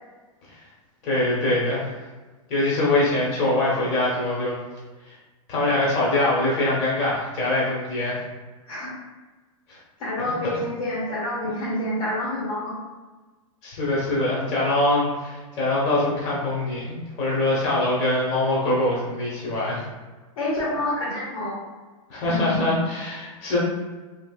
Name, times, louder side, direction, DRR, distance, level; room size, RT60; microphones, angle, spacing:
voice 1, 1.0-1.9 2.5-4.6 5.1-5.2 5.5-8.2 9.7-9.8 13.6-19.9 22.1-23.6, left 2 dB, 40° left, -5 dB, 1.1 m, -23 dB
voice 2, 10.0-12.7 20.4-21.6, left 1 dB, 80° left, -6 dB, 1.4 m, -27 dB
3.2 x 3.0 x 2.4 m, 1.3 s
hypercardioid pair, 135°, 18 cm